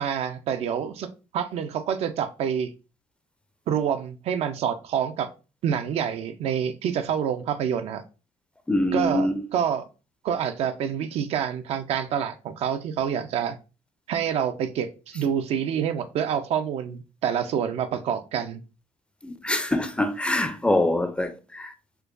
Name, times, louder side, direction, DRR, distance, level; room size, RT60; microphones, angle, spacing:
voice 1, 0.0-2.7 3.7-5.3 5.6-8.0 8.9-9.8 10.2-13.6 14.1-18.6, right 8 dB, 70° right, 0.4 m, -27 dB
voice 2, 8.7-9.4 19.2-21.7, left 1 dB, 10° left, 0.4 m, -24 dB
4.5 x 2.2 x 2.5 m
cardioid pair, 100°, 11 cm